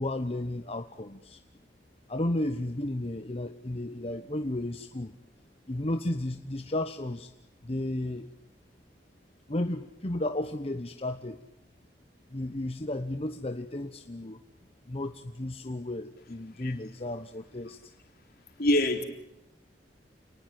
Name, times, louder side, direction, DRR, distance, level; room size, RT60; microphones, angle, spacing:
voice 1, 0.0-1.4 2.1-5.1 5.7-7.3 7.6-8.3 9.5-11.4 12.3-14.4 14.9-17.9, left 1 dB, 35° left, 8 dB, 1.0 m, -33 dB
voice 2, 18.6-19.0, left 1 dB, 55° left, 5 dB, 3.7 m, -24 dB
28.5 x 20.0 x 9.5 m, 0.87 s
head